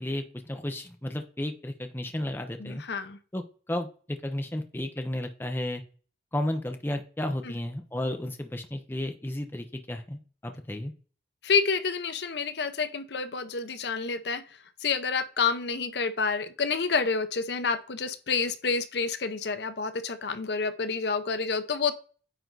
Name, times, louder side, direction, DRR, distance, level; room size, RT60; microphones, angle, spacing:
voice 1, 0.0-2.8 3.3-5.8 6.3-10.9, left 1 dB, 10° left, 6 dB, 0.7 m, -33 dB
voice 2, 2.6-3.2 7.5-7.6 11.4-14.4 14.8-21.9, left 5 dB, 70° left, 11 dB, 0.7 m, -28 dB
9.3 x 3.9 x 4.0 m, 0.39 s
head